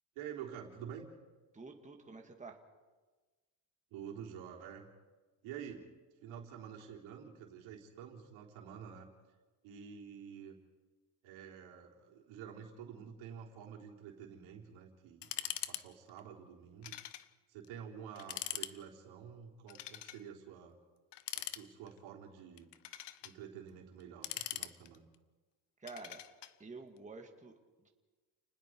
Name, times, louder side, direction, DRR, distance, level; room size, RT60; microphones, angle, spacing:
voice 1, 0.2-1.1 3.9-4.9 5.4-5.9 6.2-9.1 9.6-10.6 11.2-16.9 17.5-20.8 21.4-22.7 23.2-25.1, right 8 dB, 90° right, 0 dB, 3.7 m, -49 dB
voice 2, 1.5-2.6 25.8-26.2 26.6-27.9, right 4 dB, 15° right, 2 dB, 2.2 m, -50 dB
sound 1, 15.2-15.8 16.1-16.2 16.8-17.3 17.6-17.7 18.2-18.7 19.7-20.2 21.1-22.0 22.6-23.3 24.0-25.1 25.9-26.5, left 13 dB, 65° left, 1.0 m, -42 dB
29.5 x 20.0 x 4.7 m, 1.3 s
cardioid pair, 120°, 46 cm